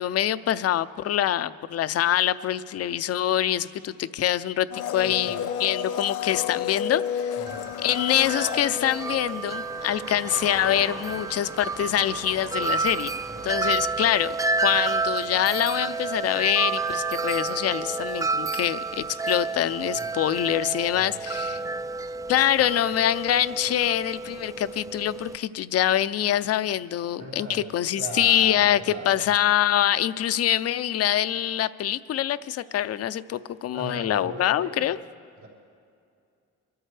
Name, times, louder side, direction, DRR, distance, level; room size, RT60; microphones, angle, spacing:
voice 1, 0.0-7.3 7.8-13.1 13.4-14.4 14.6-21.6 22.3-28.8 29.1-35.0, left 11 dB, 55° left, 14 dB, 0.5 m, -25 dB
Domestic sounds home sounds, 4.7-10.0 10.2-10.3, left 8 dB, 90° left, 0.7 m, -31 dB
voice 2, 4.9-5.4 7.4-7.7 13.3-13.8 19.9-20.2 20.9-22.0 22.5-22.7 27.2-27.7 27.9-29.3 33.7-35.0 35.4-35.5, right 3 dB, 80° right, -7 dB, 4.0 m, -40 dB
Wind chime, 7.5-25.4, right 3 dB, 10° right, 0.3 m, -30 dB
sound 1, 9.5-15.2, right 4 dB, 35° right, 1.2 m, -42 dB
24.5 x 13.5 x 3.3 m, 2.4 s
cardioid pair, 90°, 30 cm